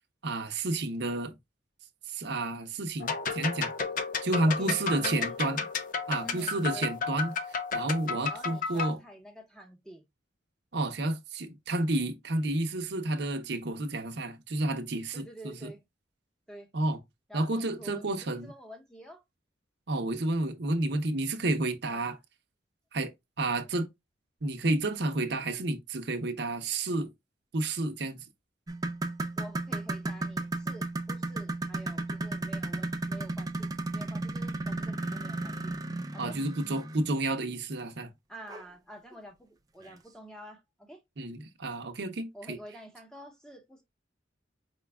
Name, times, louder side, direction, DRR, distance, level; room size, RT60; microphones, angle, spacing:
voice 1, 0.2-1.3 2.1-3.7 4.2-5.6 6.1-7.3 7.7-9.0 10.7-15.7 16.7-17.0 17.3-18.5 19.9-22.2 22.9-23.1 23.4-23.9 24.4-27.1 27.5-28.3 36.2-38.1 41.2-42.6, right 2 dB, 60° right, 0.7 m, -30 dB
sound 1, 3.0-8.9, left 5 dB, 45° left, 0.5 m, -32 dB
voice 2, 4.5-5.3 6.2-6.9 8.2-10.1 15.1-15.8 16.5-16.7 17.3-19.2 21.9-22.1 29.4-35.7 36.1-36.4 38.3-41.0 42.3-43.8, right 1 dB, 5° left, 0.9 m, -48 dB
sound 2, 28.7-37.1 38.5-38.6 39.1-39.2 39.9-40.0, right 2 dB, 20° right, 0.4 m, -34 dB
5.0 x 2.3 x 3.3 m
head